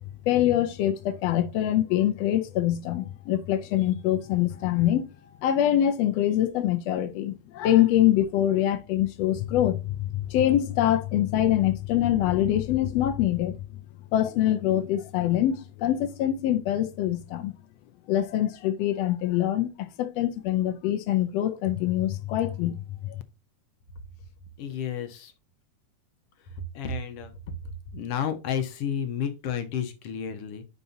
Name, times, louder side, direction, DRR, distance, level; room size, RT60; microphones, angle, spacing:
voice 1, 0.3-5.0 5.4-13.5 14.1-17.5 18.1-23.2, left 12 dB, 90° left, 1.4 m, -24 dB
voice 2, 24.6-25.3 26.4-27.3 27.9-30.6, left 7 dB, 70° left, 1.5 m, -31 dB
10.5 x 4.2 x 2.8 m
omnidirectional pair, 3.6 m